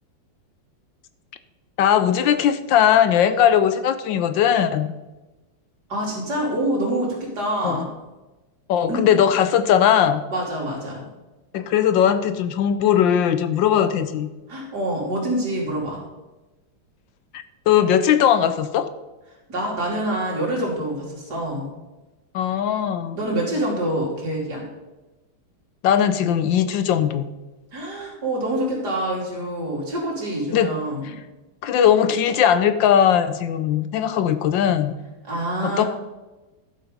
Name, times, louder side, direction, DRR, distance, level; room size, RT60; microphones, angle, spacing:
voice 1, 1.8-4.9 7.6-7.9 8.7-10.2 11.5-14.3 17.3-18.9 22.3-23.2 25.8-27.3 30.5-30.7 31.0-31.1 31.6-35.0 35.6-35.8, left 9 dB, 70° left, 12 dB, 1.2 m, -19 dB
voice 2, 5.9-7.9 8.9-9.0 10.3-11.1 14.5-16.0 19.5-21.7 23.2-24.7 27.7-31.2 35.2-35.9, right 1 dB, 50° right, -3 dB, 3.7 m, -26 dB
12.5 x 7.5 x 5.2 m, 1.1 s
omnidirectional pair, 2.3 m